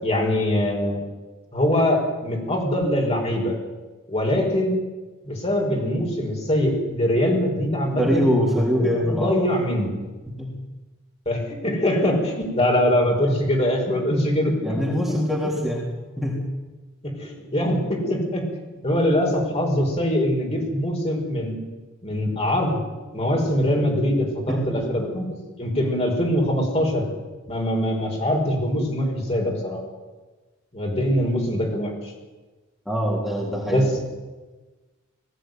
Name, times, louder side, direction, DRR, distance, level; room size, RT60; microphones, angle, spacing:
voice 1, 0.0-1.0 1.5-3.6 4.1-4.8 5.2-8.3 8.8-9.9 11.2-14.8 17.0-18.4 18.8-21.6 22.0-22.8 23.1-27.0 27.5-29.8 30.7-32.1 33.7-33.9, left 1 dB, 30° left, 0 dB, 5.1 m, -23 dB
voice 2, 8.0-9.4 10.4-10.5 14.6-15.9 16.2-16.4 24.5-24.9 32.9-33.9, equal, ahead, -4 dB, 3.7 m, -23 dB
20.0 x 15.0 x 9.4 m, 1.2 s
head